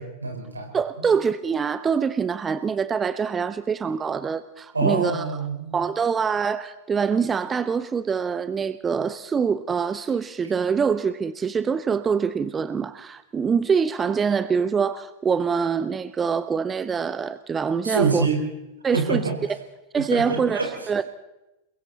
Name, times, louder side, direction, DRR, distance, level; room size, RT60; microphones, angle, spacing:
voice 1, 0.0-0.7 4.7-5.8 17.8-18.4 18.9-19.4 20.1-20.7, right 4 dB, 80° right, 2 dB, 4.6 m, -25 dB
voice 2, 0.7-5.2 5.7-18.3 18.8-19.3 19.9-21.1, right 6 dB, 20° right, 15 dB, 0.7 m, -24 dB
28.5 x 21.5 x 4.2 m, 0.98 s
figure-of-eight pair, 90°, 0 cm